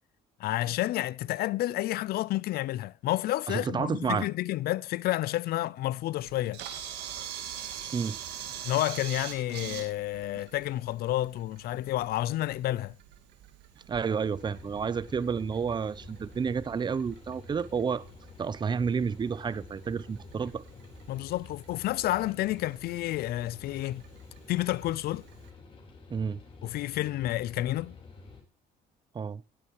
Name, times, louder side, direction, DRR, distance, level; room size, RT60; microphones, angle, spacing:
voice 1, 0.4-6.6 8.6-13.0 21.1-24.0 24.5-25.2 26.6-28.0, left 15 dB, 65° left, 0.5 m, -30 dB
voice 2, 3.5-4.3 7.9-8.2 13.9-18.0 18.4-20.6 26.1-26.4 29.1-29.4, right 6 dB, 25° right, 0.6 m, -30 dB
Camera, 6.2-25.5, right 9 dB, 80° right, 2.5 m, -45 dB
sound 1, 14.2-28.4, left 3 dB, 30° left, 4.6 m, -50 dB
19.0 x 8.6 x 3.0 m
cardioid pair, 110°, 17 cm